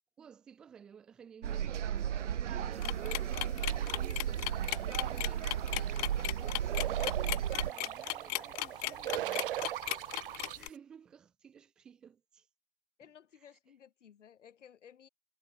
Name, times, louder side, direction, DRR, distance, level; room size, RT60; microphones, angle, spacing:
voice 1, 0.2-2.0 2.5-5.6 6.4-9.5 10.6-12.5, right 7 dB, ahead, 0.4 m, -55 dB
sound 1, 1.4-7.7, right 10 dB, 65° right, 1.7 m, -34 dB
sound 2, 2.8-10.7, left 30 dB, 30° left, 1.5 m, -36 dB
sound 3, 3.6-10.6, right 13 dB, 45° right, 0.6 m, -40 dB
voice 2, 13.0-15.1, left 8 dB, 65° left, 7.6 m, -57 dB
hypercardioid pair, 140°, 38 cm